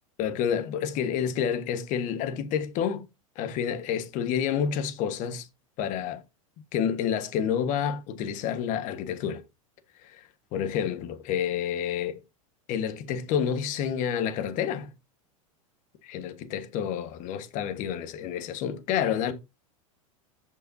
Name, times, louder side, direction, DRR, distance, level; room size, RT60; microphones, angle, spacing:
voice 1, 0.2-3.0 3.4-5.5 5.8-6.2 6.7-9.4 10.0-10.2 10.5-12.2 12.7-14.9 16.0-19.3, left 8 dB, 45° left, 1.4 m, -29 dB
15.0 x 5.4 x 2.7 m
supercardioid pair, 125°, 18 cm